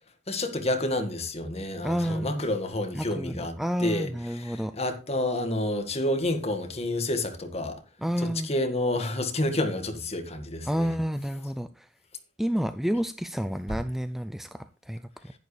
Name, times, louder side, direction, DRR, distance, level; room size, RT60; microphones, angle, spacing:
voice 1, 0.3-4.1 4.4-7.8 8.2-10.9, left 1 dB, 35° left, 1.8 m, -29 dB
voice 2, 1.8-2.4 2.9-4.7 8.0-8.6 10.7-11.9 12.4-15.3, equal, ahead, 0.4 m, -30 dB
11.0 x 10.5 x 3.3 m
head